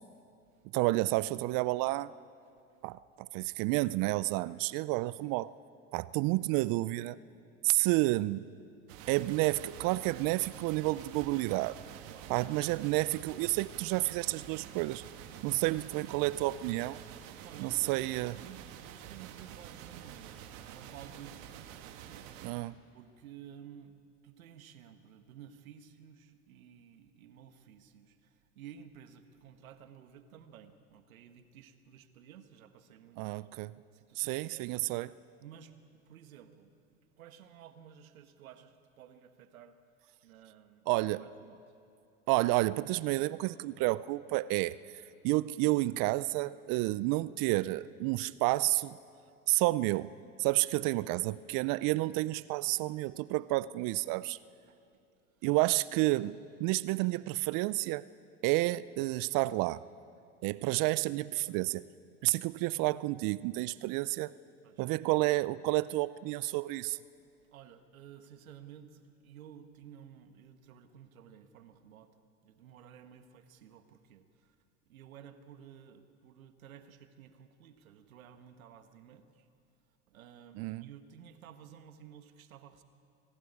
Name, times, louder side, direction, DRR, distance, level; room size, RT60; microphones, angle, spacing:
voice 1, 0.7-2.1 2.8-5.5 5.9-7.2 7.6-8.4 9.1-11.8 12.3-15.0 15.4-17.0 17.6-18.3 22.4-22.7 33.2-33.7 34.2-35.1 40.9-41.2 42.3-44.8 45.2-49.0 49.5-50.1 50.4-54.4 55.4-58.1 58.4-59.8 60.4-61.9 62.2-64.3 64.8-67.0 80.6-80.8, right 20 dB, 55° right, 19 dB, 0.6 m, -30 dB
sound 1, 8.9-22.5, right 10 dB, 70° right, 1.8 m, -48 dB
voice 2, 17.4-18.1 18.3-22.3 22.9-33.5 33.9-34.9 35.4-39.8 40.2-41.6 54.7-55.0 55.4-55.5 64.6-64.8 67.5-72.1 72.4-74.5 74.9-79.5 80.1-82.8, right 9 dB, 85° right, 9 dB, 1.5 m, -54 dB
24.0 x 13.0 x 9.9 m, 2.6 s
hypercardioid pair, 85°, 41 cm